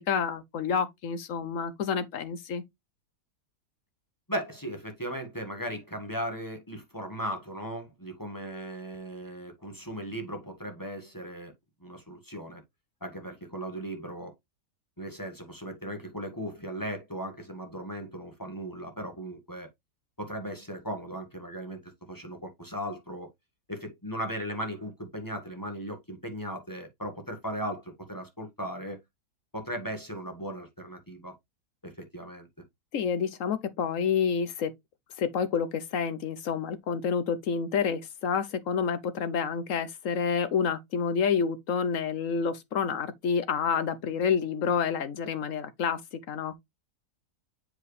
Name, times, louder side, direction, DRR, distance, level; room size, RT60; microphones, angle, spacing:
voice 1, 0.1-2.6 32.9-34.7 35.2-46.0 46.3-46.5, left 6 dB, 60° left, 1.0 m, -28 dB
voice 2, 4.3-11.5 11.8-12.6 13.0-14.3 15.0-19.7 20.2-23.3 23.7-29.0 29.5-31.3 31.8-32.5, equal, 15° left, 1.4 m, -37 dB
7.5 x 4.9 x 3.2 m
omnidirectional pair, 1.8 m